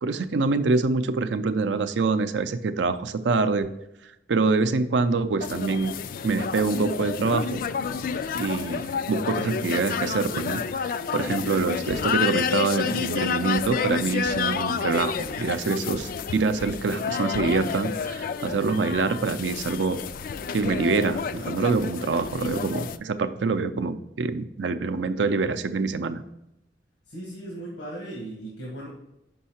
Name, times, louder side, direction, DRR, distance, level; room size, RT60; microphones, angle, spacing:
voice 1, 0.0-3.7 4.3-5.9 6.2-7.6 8.3-20.0 20.5-26.2, right 4 dB, 80° right, 11 dB, 0.5 m, -25 dB
sound 1, 5.4-23.0, left 6 dB, 50° left, 0.3 m, -30 dB
voice 2, 27.1-28.9, right 1 dB, 85° left, -2 dB, 1.4 m, -37 dB
5.5 x 5.4 x 4.2 m, 0.89 s
head